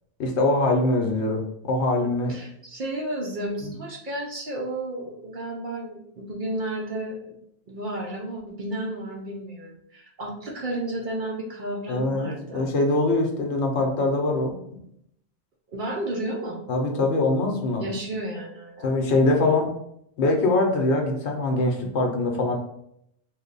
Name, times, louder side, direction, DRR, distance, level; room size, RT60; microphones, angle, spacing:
voice 1, 0.2-2.4 3.6-3.7 11.9-14.6 16.7-17.8 18.8-19.7 20.2-22.6, left 2 dB, 75° left, 2 dB, 0.9 m, -23 dB
voice 2, 2.3-7.4 7.7-12.7 15.7-16.6 17.8-18.9, right 1 dB, 55° right, -1 dB, 0.6 m, -32 dB
3.1 x 2.1 x 3.8 m, 0.74 s
omnidirectional pair, 1.2 m